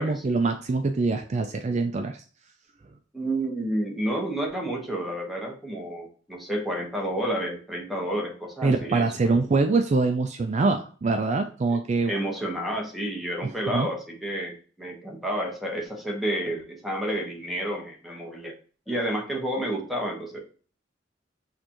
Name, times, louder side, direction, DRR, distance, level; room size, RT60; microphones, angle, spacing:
voice 1, 0.0-2.2 8.6-12.1 13.7-13.9, right 3 dB, 40° right, 6 dB, 0.4 m, -24 dB
voice 2, 3.1-9.4 11.7-11.8 12.0-18.5 18.9-20.4, right 1 dB, ahead, -1 dB, 1.1 m, -30 dB
6.5 x 2.6 x 2.9 m, 0.41 s
head